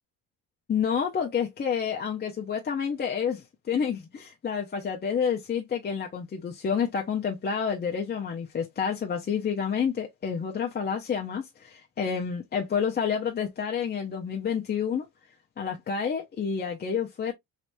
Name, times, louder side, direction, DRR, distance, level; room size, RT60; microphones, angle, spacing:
voice 1, 0.7-15.1 15.6-17.3, left 7 dB, 25° left, 0.6 m, -29 dB
3.2 x 3.1 x 2.5 m
cardioid pair, 110°, 39 cm